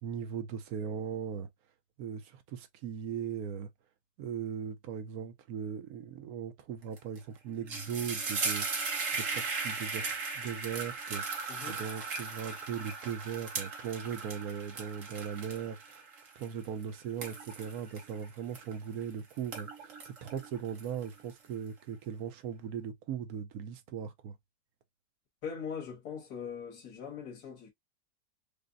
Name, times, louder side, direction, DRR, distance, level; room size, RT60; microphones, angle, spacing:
voice 1, 0.0-1.5 2.0-3.7 4.2-16.0 16.4-24.4, right 8 dB, 75° right, 1.1 m, -39 dB
sound 1, 7.0-7.2 7.5-19.0 19.4-21.3, right 4 dB, 55° right, 1.4 m, -37 dB
voice 2, 11.5-11.8 25.4-27.7, left 6 dB, 70° left, 1.9 m, -41 dB
5.0 x 2.1 x 2.5 m
omnidirectional pair, 1.7 m